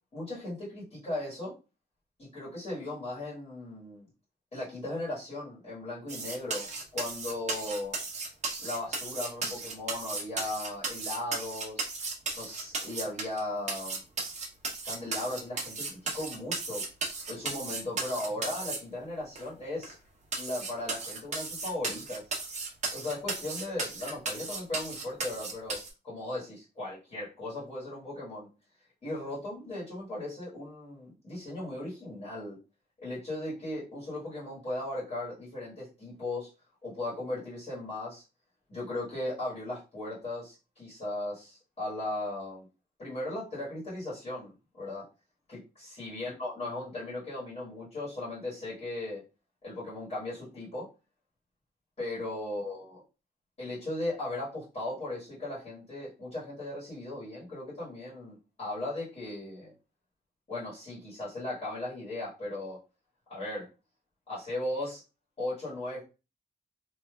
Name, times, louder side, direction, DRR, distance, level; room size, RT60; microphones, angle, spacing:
voice 1, 0.1-1.5 2.2-4.0 4.5-6.7 6.9-8.0 8.6-11.9 12.3-14.0 14.8-16.8 17.3-19.9 20.4-22.2 22.9-25.8 26.0-28.5 29.0-32.6 33.0-36.5 36.8-38.2 38.7-42.7 43.0-45.0 45.5-49.2 49.6-50.9 52.0-53.0 53.6-59.7 60.5-62.8 63.3-63.7 64.3-65.0 65.4-66.0, left 1 dB, 40° left, -8 dB, 1.5 m, -37 dB
sound 1, 6.1-13.4 13.7-18.8 19.4-19.5 19.8-19.9 20.3-25.9, right 3 dB, 40° right, 0.9 m, -35 dB
3.2 x 2.5 x 2.2 m, 0.30 s
wide cardioid pair, 170°, 18 cm